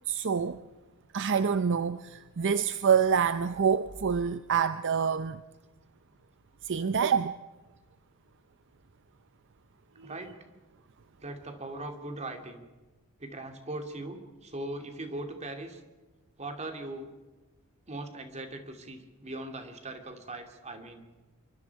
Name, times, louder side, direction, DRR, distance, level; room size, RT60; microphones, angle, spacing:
voice 1, 0.1-0.6 1.1-5.4 6.6-7.3 10.0-10.1, right 6 dB, 55° right, 0.6 m, -26 dB
voice 2, 10.0-10.4 11.2-12.7 13.2-15.8 16.4-17.1 17.9-21.0, right 2 dB, 30° right, 2.5 m, -40 dB
27.5 x 24.0 x 4.7 m
head